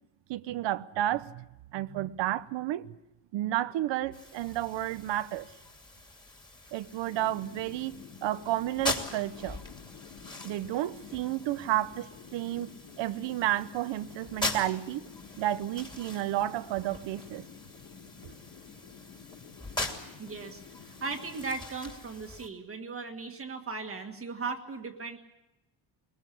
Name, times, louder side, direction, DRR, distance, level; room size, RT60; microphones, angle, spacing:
voice 1, 0.3-1.4 1.7-2.9 3.3-5.5 6.7-9.6 10.4-12.7 13.0-15.0 15.4-17.4, right 14 dB, 75° right, 1.0 m, -31 dB
sound 1, 4.1-22.5, left 2 dB, 10° left, 2.7 m, -41 dB
sound 2, 7.0-21.5, left 7 dB, 75° left, 3.6 m, -50 dB
voice 2, 20.2-25.2, right 4 dB, 30° right, 1.8 m, -37 dB
21.5 x 21.5 x 8.5 m
cardioid pair, 155°, 44 cm